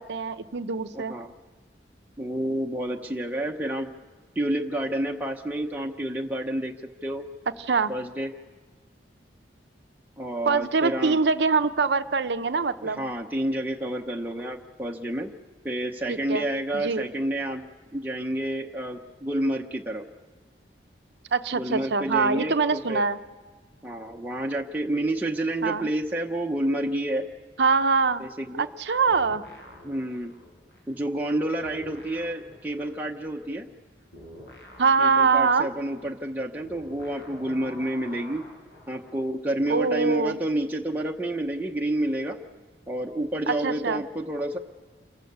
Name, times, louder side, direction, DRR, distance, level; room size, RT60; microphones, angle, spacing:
voice 1, 0.0-1.1 7.7-7.9 10.5-13.0 16.1-16.5 16.7-17.1 21.3-23.2 25.6-25.9 27.6-28.3 28.6-29.4 34.8-35.7 39.7-40.4 43.5-44.0, right 4 dB, 75° right, 10 dB, 0.6 m, -24 dB
voice 2, 0.9-1.3 2.2-3.9 4.4-6.7 7.0-7.2 7.9-8.3 10.2-11.2 12.8-15.3 15.6-17.6 17.9-20.0 21.5-23.0 23.8-27.3 28.2-28.6 29.8-30.3 30.9-33.7 35.0-38.4 38.9-42.4 42.9-44.6, right 1 dB, 10° right, 0 dB, 0.8 m, -29 dB
sound 1, 29.1-31.3 31.6-39.2, left 1 dB, 65° left, 4.8 m, -48 dB
27.5 x 15.0 x 6.8 m, 1.5 s
head